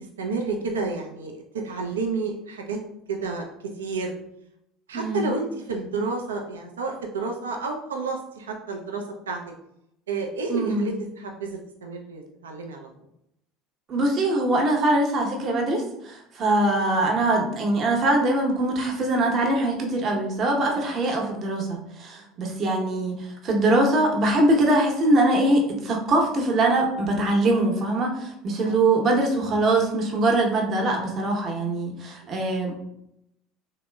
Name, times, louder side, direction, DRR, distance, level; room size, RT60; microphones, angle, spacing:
voice 1, 0.2-2.8 3.1-3.5 3.8-4.2 4.9-9.4 10.1-12.9 20.6-20.8 28.6-28.8, right 4 dB, 90° right, 2 dB, 0.3 m, -30 dB
voice 2, 10.5-10.9 13.9-32.7, right 2 dB, 45° right, 1 dB, 0.8 m, -22 dB
3.0 x 2.6 x 2.2 m, 0.79 s
hypercardioid pair, 75°, 0 cm